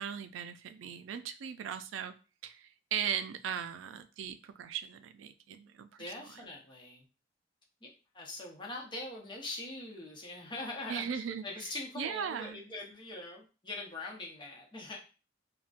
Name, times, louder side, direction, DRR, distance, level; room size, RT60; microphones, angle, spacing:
voice 1, 0.0-2.1 2.4-6.0 10.9-11.4 12.0-12.6, right 8 dB, 85° right, 10 dB, 0.3 m, -38 dB
voice 2, 6.0-7.0 7.8-7.9 8.1-11.1 11.4-15.0, left 2 dB, 25° left, -1 dB, 0.8 m, -42 dB
3.7 x 2.2 x 2.4 m, 0.33 s
head